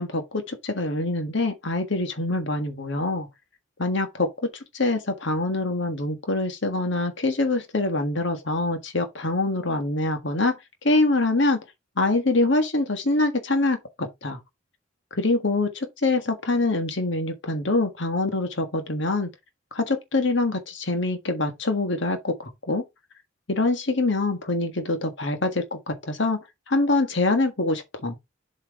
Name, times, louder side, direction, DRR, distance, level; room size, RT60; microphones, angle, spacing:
voice 1, 0.0-3.3 3.8-10.6 10.8-11.6 12.0-14.4 15.1-19.3 19.7-22.8 23.5-26.4 26.7-28.2, left 2 dB, 60° left, 1.5 m, -25 dB
7.4 x 4.5 x 4.6 m
head